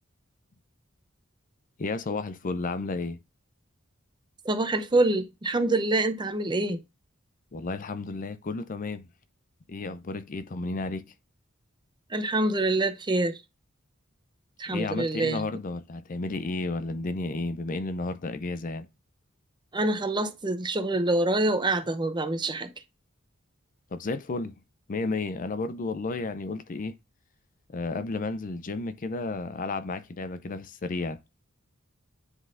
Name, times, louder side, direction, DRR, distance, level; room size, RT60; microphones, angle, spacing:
voice 1, 1.8-3.2 7.5-9.1 9.7-11.1 14.7-18.9 23.9-24.5 24.9-27.0 27.7-31.2, left 3 dB, 40° left, 0.5 m, -32 dB
voice 2, 4.4-6.8 12.1-13.4 14.6-15.4 19.7-22.7, right 2 dB, 20° right, 0.7 m, -26 dB
9.8 x 3.9 x 2.5 m
head